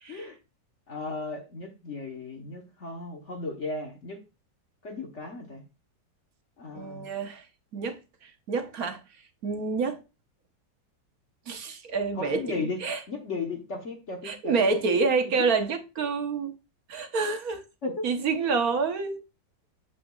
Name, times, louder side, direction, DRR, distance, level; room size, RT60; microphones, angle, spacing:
voice 1, 0.9-4.2 4.8-5.6 6.6-7.1 12.2-12.8 13.1-15.0 15.4-15.5 17.8-18.1, left 3 dB, 45° left, 1.4 m, -35 dB
voice 2, 6.7-7.4 7.7-9.0 9.4-10.0 11.5-13.0 14.2-16.5 16.9-17.6 18.0-19.2, right 4 dB, 55° right, 1.4 m, -28 dB
8.4 x 7.5 x 2.3 m
omnidirectional pair, 2.0 m